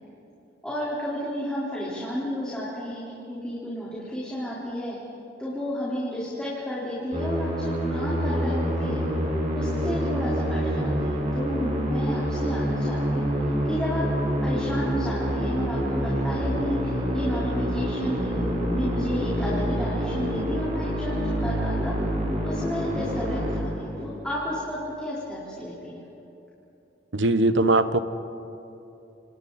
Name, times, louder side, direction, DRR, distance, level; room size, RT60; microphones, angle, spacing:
voice 1, 0.6-5.0 5.4-9.0 9.6-13.3 13.6-21.9 22.4-26.0, equal, 5° left, -9 dB, 4.5 m, -32 dB
Musical instrument, 7.1-24.3, equal, 40° right, 5.1 m, -27 dB
voice 2, 27.1-28.0, right 2 dB, 85° right, 12 dB, 1.1 m, -20 dB
29.0 x 28.0 x 4.3 m, 3.0 s
head